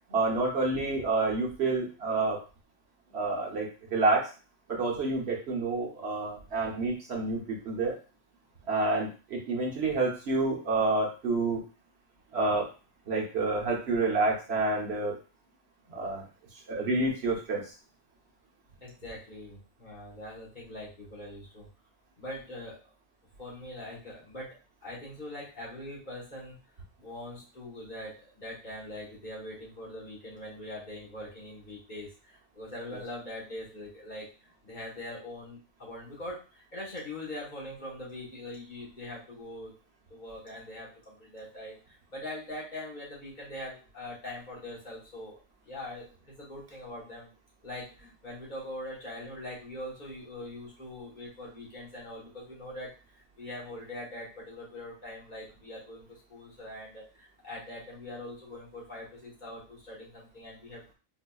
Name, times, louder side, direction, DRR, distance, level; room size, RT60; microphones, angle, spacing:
voice 1, 0.1-2.4 3.1-4.3 4.7-8.0 8.7-11.6 12.3-12.7 13.1-15.1 15.9-16.2 16.7-17.7, right 3 dB, 65° right, -1 dB, 1.1 m, -28 dB
voice 2, 18.8-21.7 22.2-22.9 23.4-24.6 24.8-26.6 27.0-34.3 34.6-39.7 40.1-45.4 45.6-47.3 47.6-60.8, left 1 dB, 40° left, -5 dB, 1.3 m, -42 dB
4.0 x 2.7 x 2.2 m, 0.34 s
omnidirectional pair, 1.2 m